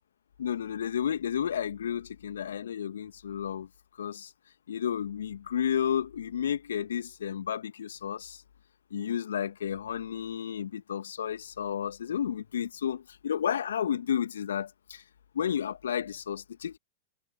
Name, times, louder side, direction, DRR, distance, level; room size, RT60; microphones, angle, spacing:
voice 1, 0.4-3.7 4.0-4.3 4.7-8.4 8.9-15.0 15.3-16.8, left 9 dB, 70° left, 1.7 m, -32 dB
figure-of-eight pair, 100°, 0 cm